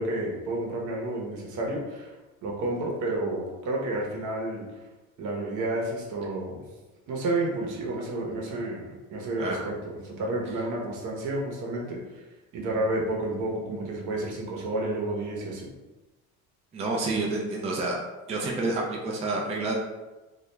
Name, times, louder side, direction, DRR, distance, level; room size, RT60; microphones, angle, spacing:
voice 1, 0.0-2.1 2.4-4.6 5.2-6.6 7.1-8.8 9.1-12.2 12.5-15.7, right 2 dB, 65° right, -2 dB, 0.8 m, -30 dB
voice 2, 9.4-9.7 16.7-18.0 18.3-19.8, right 2 dB, 20° right, -1 dB, 0.4 m, -29 dB
2.4 x 2.1 x 3.0 m, 1.1 s
cardioid pair, 105°, 33 cm